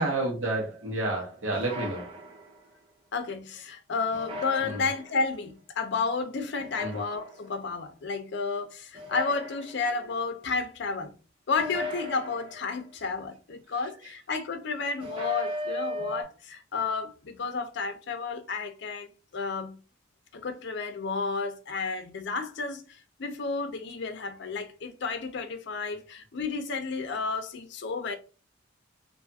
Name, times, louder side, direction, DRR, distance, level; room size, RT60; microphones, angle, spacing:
voice 1, 0.0-2.1 4.6-4.9 6.8-7.0 13.8-14.1, right 2 dB, 85° right, 1.1 m, -30 dB
sound 1, 1.5-2.7 4.1-5.3 6.6-7.6 8.9-10.1 11.6-12.9 15.0-16.2, left 1 dB, 25° right, 0.6 m, -37 dB
voice 2, 3.1-11.1 11.5-19.8 20.3-22.8 23.2-28.2, left 4 dB, 60° left, 0.5 m, -32 dB
2.6 x 2.4 x 2.6 m
head